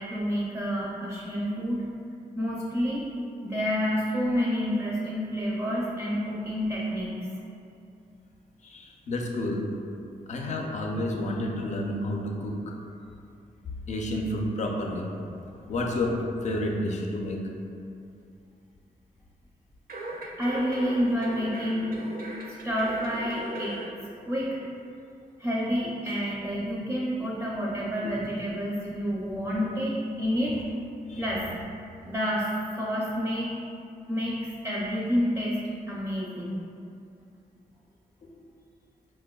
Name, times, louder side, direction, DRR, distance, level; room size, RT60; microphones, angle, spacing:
voice 1, 0.0-1.8 2.4-3.1 3.4-7.3 20.4-22.0 22.6-23.8 24.3-24.6 25.4-30.6 31.2-31.4 32.1-32.5 32.8-33.5 34.1-34.4 34.6-36.6, equal, 15° right, -6 dB, 0.4 m, -29 dB
voice 2, 8.6-9.6 10.3-12.5 13.9-15.0 15.7-16.1 16.4-17.4 31.1-31.2 38.2-38.3, left 1 dB, 50° left, 0 dB, 0.4 m, -30 dB
sound 1, 19.9-23.9 24.3-24.4, right 1 dB, 70° right, 0.6 m, -38 dB
4.9 x 2.2 x 2.2 m, 2.6 s
wide cardioid pair, 115°, 15 cm